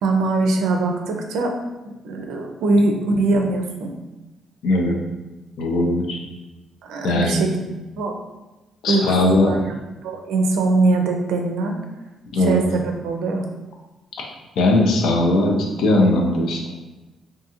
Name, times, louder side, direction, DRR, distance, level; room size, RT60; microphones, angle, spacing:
voice 1, 0.0-1.6 1.8-3.9 6.8-7.5 8.0-8.2 8.9-9.6 10.0-11.8 12.4-13.4, right 2 dB, 85° right, 3 dB, 0.4 m, -21 dB
voice 2, 4.6-5.0 5.6-6.2 7.0-7.4 8.8-9.6 12.3-12.6 14.6-16.7, left 1 dB, 80° left, 0 dB, 0.5 m, -19 dB
2.5 x 2.4 x 2.8 m, 1.1 s
cardioid pair, 90°, 0 cm